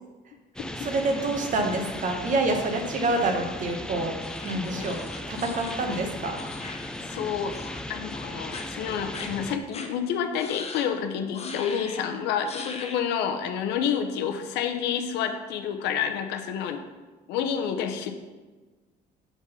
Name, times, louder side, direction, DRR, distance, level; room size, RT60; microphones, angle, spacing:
sound 1, 0.6-9.6, left 1 dB, 5° left, 0.3 m, -37 dB
voice 1, 0.8-4.2 4.4-6.4, right 2 dB, 50° right, 4 dB, 1.1 m, -27 dB
sound 2, 4.2-7.2 7.5-7.8 8.1-8.6 9.1-9.3 9.7-9.9 10.3-10.9 11.3-12.0 12.4-13.0, left 5 dB, 40° left, 0.8 m, -40 dB
voice 2, 7.1-7.5 7.9-16.8 17.3-18.1, left 8 dB, 85° left, 6 dB, 0.7 m, -29 dB
6.0 x 3.8 x 5.5 m, 1.3 s
cardioid pair, 110°, 17 cm